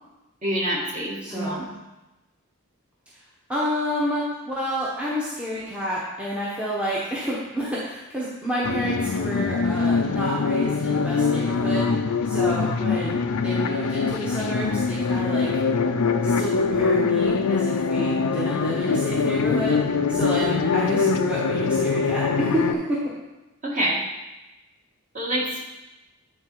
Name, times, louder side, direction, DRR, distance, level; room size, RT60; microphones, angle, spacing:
voice 1, 0.4-1.7 5.7-5.8 23.6-24.0 25.1-25.6, right 1 dB, 35° right, -4 dB, 1.7 m, -27 dB
voice 2, 1.2-1.7 3.5-11.9 12.2-15.5 16.2-19.8 20.1-23.2, equal, 5° right, -7 dB, 1.0 m, -29 dB
sound 1, 8.6-22.7, left 4 dB, 75° left, 0.5 m, -23 dB
9.3 x 4.0 x 4.7 m, 1.0 s
head